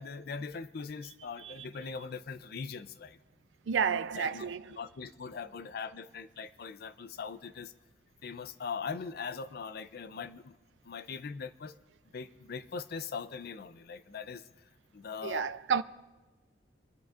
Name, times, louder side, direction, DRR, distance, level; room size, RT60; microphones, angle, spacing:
voice 1, 0.0-3.2 4.2-7.7 8.2-10.6 10.8-11.7 12.1-14.4 14.9-15.5, left 5 dB, 60° left, 0.5 m, -41 dB
voice 2, 3.7-4.7 15.2-15.8, right 6 dB, 85° right, 0.5 m, -30 dB
27.5 x 11.5 x 2.4 m
head